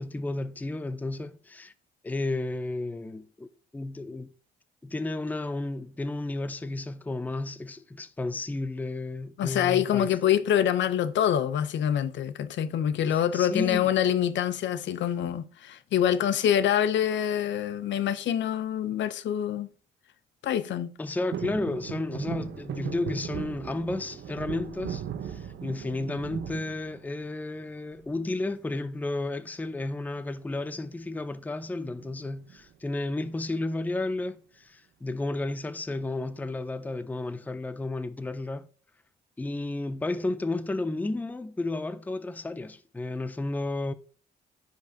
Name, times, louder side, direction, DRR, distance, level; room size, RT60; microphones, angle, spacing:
voice 1, 0.0-1.7 2.0-3.5 3.7-4.3 4.8-10.1 13.1-13.9 21.0-38.7 39.4-43.9, left 2 dB, 10° left, 0.5 m, -32 dB
voice 2, 9.4-19.7 20.4-20.9, left 10 dB, 65° left, 0.6 m, -25 dB
sound 1, 21.3-27.5 27.9-28.5 29.8-30.2 30.5-30.6 30.8-31.2 32.0-32.9 33.4-33.5, right 9 dB, 65° right, 0.8 m, -38 dB
9.9 x 5.2 x 2.7 m
cardioid pair, 90°, 20 cm